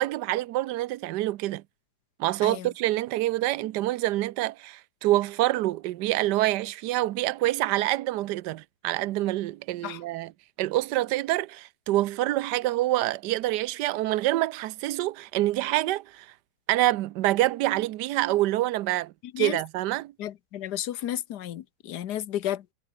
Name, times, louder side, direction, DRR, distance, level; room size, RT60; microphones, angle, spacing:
voice 1, 0.0-1.6 2.2-10.3 10.6-16.3 16.7-20.1, right 16 dB, 75° right, 1.0 m, -26 dB
voice 2, 20.2-22.6, left 11 dB, 60° left, 1.2 m, -32 dB
omnidirectional pair, 2.4 m